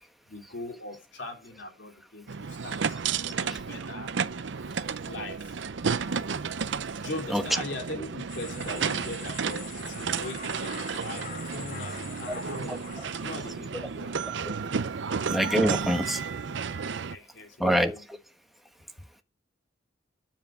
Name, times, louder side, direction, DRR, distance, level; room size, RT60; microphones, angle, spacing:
voice 1, 0.3-3.0 3.3-4.1 5.1-5.6 7.0-14.4 17.1-18.0, left 2 dB, 75° left, 3.0 m, -40 dB
sound 1, 2.3-17.2, right 5 dB, 80° right, 0.6 m, -32 dB
sound 2, 8.3-13.6, left 4 dB, 50° left, 3.4 m, -44 dB
voice 2, 15.3-16.2 17.6-18.0, equal, ahead, 1.2 m, -25 dB
9.6 x 7.4 x 8.8 m
head